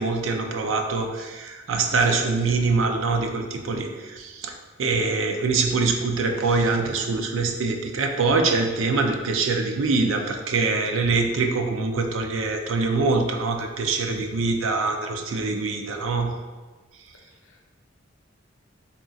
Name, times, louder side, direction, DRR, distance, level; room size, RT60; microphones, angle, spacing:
voice 1, 0.0-16.4, right 3 dB, 70° right, 4 dB, 0.4 m, -24 dB
voice 2, 2.1-2.2 11.0-11.2 14.2-14.3 17.4-17.6, left 2 dB, 85° left, 2 dB, 0.6 m, -40 dB
3.6 x 2.4 x 3.8 m, 1.3 s
head